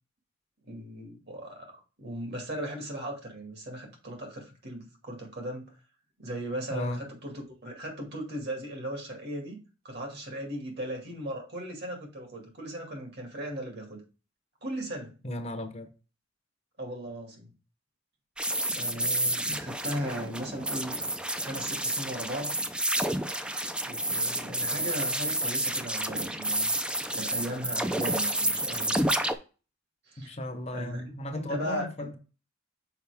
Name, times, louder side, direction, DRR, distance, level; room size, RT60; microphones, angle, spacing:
voice 1, 0.6-5.7 6.2-9.6 9.8-14.0 14.6-15.1 16.8-17.5 18.7-21.0 21.4-22.5 23.8-26.7 27.1-29.0 30.1-30.3 30.7-31.0 31.3-32.1, right 1 dB, 60° right, 2.1 m, -37 dB
voice 2, 6.7-7.0 15.2-15.9 19.5-19.6 30.2-32.2, left 1 dB, 35° left, 0.8 m, -35 dB
sound 1, 18.4-29.4, right 1 dB, 5° right, 0.4 m, -30 dB
5.7 x 4.9 x 3.4 m
head